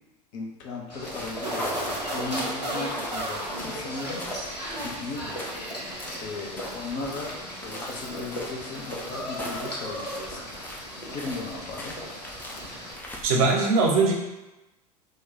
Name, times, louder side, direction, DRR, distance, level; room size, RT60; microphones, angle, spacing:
voice 1, 0.3-5.4 5.8-11.9, left 3 dB, 40° left, 0 dB, 0.7 m, -37 dB
sound 1, 0.9-12.9, equal, 90° left, 0.8 m, -37 dB
sound 2, 1.0-13.6, left 1 dB, 10° left, 0.5 m, -41 dB
sound 3, 1.4-4.4 4.8-5.4, right 1 dB, 80° right, 0.9 m, -34 dB
voice 2, 13.2-14.1, right 3 dB, 60° right, 0 dB, 0.7 m, -20 dB
2.9 x 2.2 x 3.8 m, 1.0 s
figure-of-eight pair, 80°, 21 cm